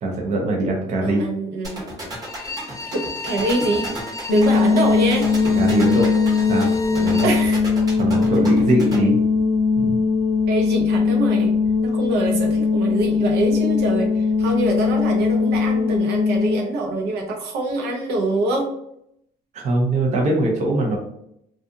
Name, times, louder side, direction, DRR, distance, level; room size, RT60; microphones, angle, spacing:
voice 1, 0.0-1.3 5.5-6.1 6.5-7.3 7.9-9.2 9.8-9.9 19.5-21.0, right 2 dB, 45° right, -1 dB, 0.6 m, -22 dB
voice 2, 1.0-1.8 2.9-4.0 4.3-5.3 7.2-7.6 8.4-8.5 10.5-11.5 11.8-18.7, right 2 dB, 75° right, 2 dB, 0.7 m, -24 dB
sound 1, 1.6-9.0, right 2 dB, 20° right, 0.9 m, -33 dB
Bowed string instrument, 2.2-7.5, left 3 dB, 20° left, 0.3 m, -34 dB
sound 2, 4.3-16.6, left 5 dB, 70° left, 0.6 m, -20 dB
2.5 x 2.4 x 2.5 m, 0.75 s
cardioid pair, 110°, 17 cm